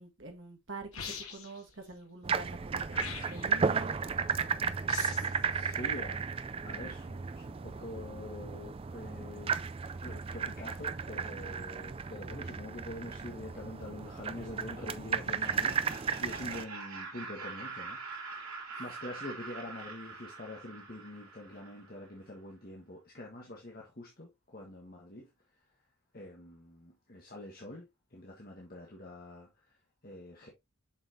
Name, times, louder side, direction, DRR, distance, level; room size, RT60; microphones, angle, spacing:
voice 1, 0.0-3.9, right 2 dB, 55° right, 1.8 m, -45 dB
sound 1, 0.9-1.6 2.9-3.6 4.9-5.4, left 6 dB, 80° left, 1.8 m, -42 dB
sound 2, 2.2-16.6, right 5 dB, 25° right, 0.3 m, -34 dB
voice 2, 4.7-5.1 5.5-9.6 10.0-25.3 26.1-30.5, left 1 dB, 40° left, 1.6 m, -46 dB
Laughter, 15.2-22.0, right 4 dB, 90° right, 3.4 m, -44 dB
7.3 x 5.8 x 2.7 m
head